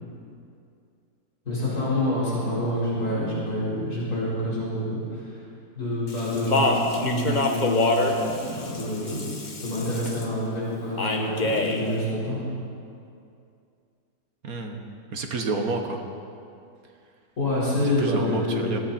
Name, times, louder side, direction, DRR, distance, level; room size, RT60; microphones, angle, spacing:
voice 1, 1.4-5.4 5.7-12.4 17.4-18.7, left 1 dB, 65° left, -9 dB, 5.0 m, -27 dB
Speech, 6.1-10.2 11.0-11.8, left 2 dB, 30° left, 1.3 m, -26 dB
voice 2, 14.4-14.8 15.1-16.0 17.8-18.8, right 3 dB, 65° right, 4 dB, 1.7 m, -29 dB
21.0 x 16.0 x 4.3 m, 2.5 s
omnidirectional pair, 1.7 m